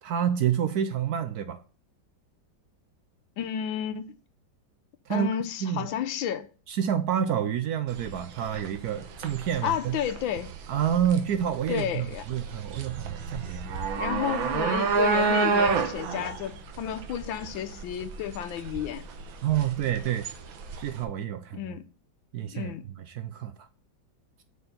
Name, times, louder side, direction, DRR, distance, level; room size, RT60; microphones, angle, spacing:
voice 1, 0.0-1.6 5.1-5.3 5.6-5.9 6.7-10.0 10.7-13.7 19.4-20.3 20.8-21.8 22.3-23.7, right 9 dB, 70° right, 0.9 m, -28 dB
voice 2, 3.4-4.1 5.1-6.5 9.6-10.5 11.7-12.2 14.0-19.1 21.5-21.9 22.5-22.9, left 9 dB, 85° left, 1.5 m, -31 dB
sound 1, 7.9-21.0, right 5 dB, 90° right, 1.8 m, -30 dB
6.7 x 4.4 x 6.6 m
omnidirectional pair, 2.1 m